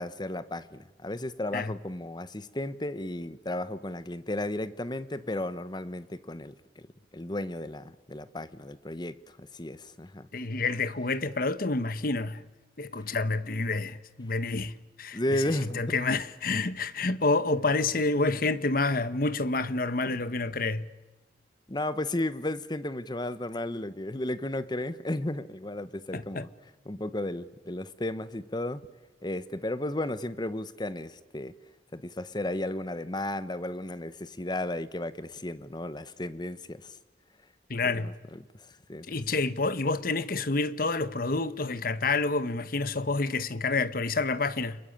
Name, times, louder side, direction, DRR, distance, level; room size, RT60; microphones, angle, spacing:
voice 1, 0.0-6.9 7.1-10.3 15.1-15.9 21.7-26.5 26.9-28.8 29.2-31.5 31.9-36.9 37.9-38.4 38.9-39.2, left 1 dB, 25° left, 0.9 m, -34 dB
voice 2, 10.3-12.4 12.8-20.9 26.1-26.4 37.7-38.1 39.1-44.8, left 3 dB, 55° left, 1.1 m, -28 dB
30.0 x 21.5 x 8.7 m
head